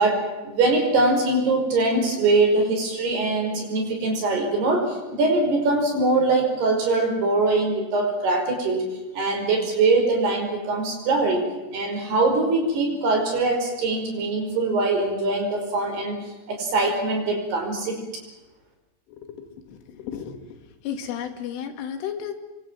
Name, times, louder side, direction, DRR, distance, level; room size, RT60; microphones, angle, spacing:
voice 1, 0.0-8.9 9.1-11.4 11.7-16.2 16.5-18.0, right 3 dB, 55° right, 3 dB, 7.2 m, -22 dB
voice 2, 19.1-20.4 20.8-22.3, left 8 dB, 90° left, 6 dB, 4.9 m, -33 dB
27.5 x 23.5 x 7.6 m, 1.0 s
omnidirectional pair, 5.5 m